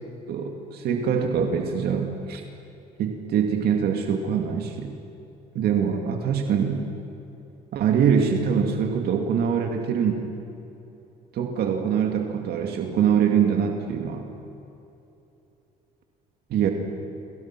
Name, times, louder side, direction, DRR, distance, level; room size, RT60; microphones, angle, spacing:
voice 1, 0.3-2.4 3.0-4.9 5.5-6.8 7.7-10.3 11.3-14.3 16.5-16.7, right 7 dB, 65° right, 3 dB, 2.3 m, -24 dB
28.5 x 25.0 x 6.1 m, 2.9 s
cardioid pair, 110°, 17 cm